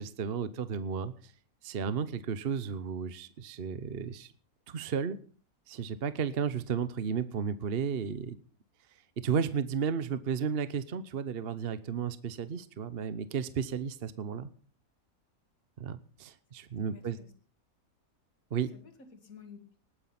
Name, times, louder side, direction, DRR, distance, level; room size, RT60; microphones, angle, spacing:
voice 1, 0.0-1.3 1.6-4.3 4.7-5.2 5.7-8.4 9.2-14.5 15.8-17.2 18.5-18.7, right 6 dB, 45° right, 13 dB, 1.0 m, -33 dB
voice 2, 16.8-17.3 18.7-19.8, left 6 dB, 65° left, 7 dB, 2.7 m, -52 dB
19.5 x 9.5 x 5.9 m, 0.41 s
omnidirectional pair, 1.6 m